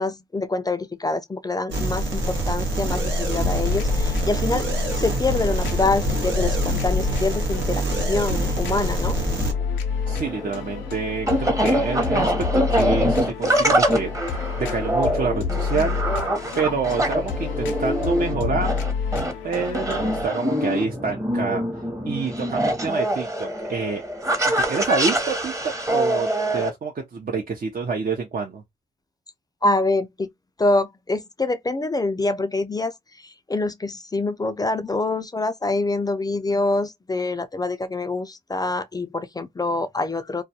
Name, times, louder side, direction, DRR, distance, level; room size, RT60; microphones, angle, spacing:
voice 1, 0.0-4.7 5.0-9.2 29.6-30.3 30.6-40.4, left 2 dB, 20° left, 0.4 m, -25 dB
sound 1, 1.7-9.5, right 1 dB, 80° right, 0.8 m, -25 dB
sound 2, 3.4-20.3, left 6 dB, 85° left, 0.5 m, -29 dB
sound 3, 10.1-26.7, right 1 dB, 15° right, 0.8 m, -24 dB
voice 2, 10.1-14.1 14.4-16.0 16.5-18.7 19.4-21.6 22.1-24.0 24.6-25.5 25.9-28.6, right 5 dB, 45° right, 0.6 m, -27 dB
2.2 x 2.2 x 2.7 m
supercardioid pair, 45°, 19 cm